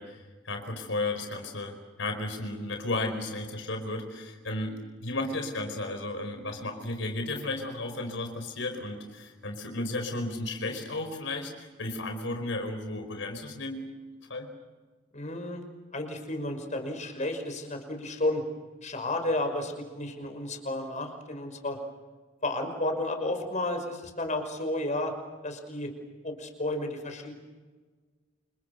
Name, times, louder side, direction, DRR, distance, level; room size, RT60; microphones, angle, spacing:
voice 1, 0.0-13.8 14.3-14.5, left 2 dB, 80° left, 5 dB, 4.9 m, -34 dB
voice 2, 15.1-15.6 15.9-18.4 18.8-21.8 22.4-25.1 25.4-25.9 26.2-27.3, left 1 dB, 40° left, 5 dB, 5.8 m, -32 dB
30.0 x 28.5 x 6.8 m, 1.3 s
head